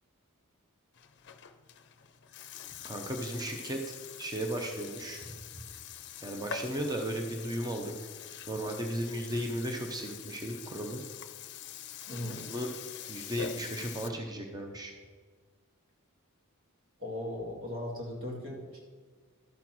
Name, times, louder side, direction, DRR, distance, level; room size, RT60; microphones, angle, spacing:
Burping eructation, 0.9-14.1, left 8 dB, 55° left, 0.6 m, -45 dB
voice 1, 2.8-3.8 4.2-5.4 6.2-8.1 8.5-11.0 12.5-12.7 13.1-14.9, right 1 dB, 20° right, 2 dB, 0.7 m, -35 dB
voice 2, 12.1-12.5 17.0-18.8, left 1 dB, 60° right, -3 dB, 2.5 m, -38 dB
12.0 x 4.4 x 6.1 m, 1.5 s
head